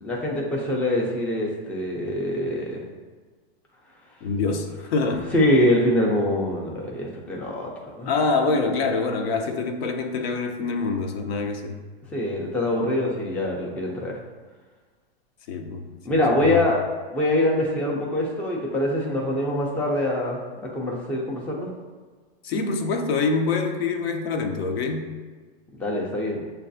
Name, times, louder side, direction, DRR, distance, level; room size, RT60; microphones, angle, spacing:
voice 1, 0.0-2.8 5.3-8.1 12.1-14.1 16.1-16.8 17.1-21.7 25.8-26.5, left 1 dB, 5° left, -2 dB, 0.4 m, -24 dB
voice 2, 4.2-5.3 8.1-11.8 15.5-15.8 16.1-16.6 22.4-25.1, left 4 dB, 70° left, 5 dB, 0.7 m, -25 dB
6.3 x 2.3 x 2.6 m, 1.4 s
hypercardioid pair, 125°, 31 cm